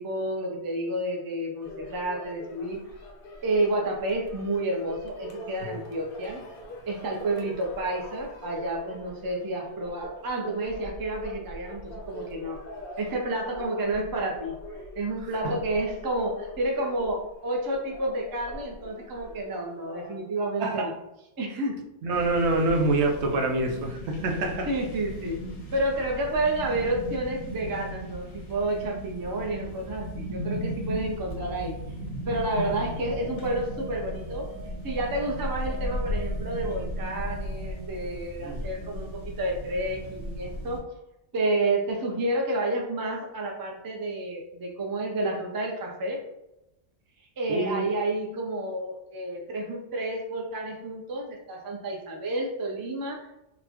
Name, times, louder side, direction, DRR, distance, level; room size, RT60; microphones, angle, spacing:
voice 1, 0.0-2.8 3.4-6.4 6.9-12.6 13.0-14.5 14.9-20.9 21.4-21.8 24.7-25.4 25.7-31.8 32.3-34.5 34.8-40.8 41.3-46.2 47.4-53.3, right 1 dB, 35° right, 0 dB, 0.3 m, -30 dB
sound 1, 1.6-20.2, equal, 60° left, 0.8 m, -43 dB
voice 2, 20.6-20.9 21.5-21.7 22.0-24.7 38.4-38.6 47.5-47.9, right 2 dB, 75° right, 2 dB, 0.9 m, -26 dB
sound 2, 22.1-40.8, equal, 85° left, 1.2 m, -36 dB
sound 3, 33.1-38.2, right 9 dB, 60° right, 1.7 m, -49 dB
4.0 x 2.1 x 2.9 m, 0.88 s
omnidirectional pair, 1.2 m